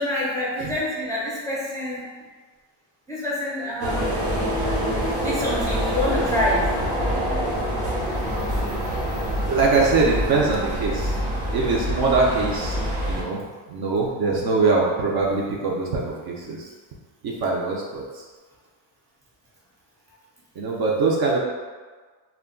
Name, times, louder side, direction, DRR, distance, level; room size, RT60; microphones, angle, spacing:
voice 1, 0.0-2.1 3.1-4.1 5.2-6.6, left 1 dB, 5° left, -8 dB, 0.4 m, -26 dB
sound 1, 3.8-13.2, equal, 80° right, 1.0 m, -25 dB
voice 2, 9.5-11.1 11.5-12.7 13.1-16.6 17.2-18.0 20.6-21.4, right 3 dB, 50° right, -2 dB, 0.6 m, -22 dB
2.3 x 2.1 x 3.6 m, 1.4 s
cardioid pair, 140°, 49 cm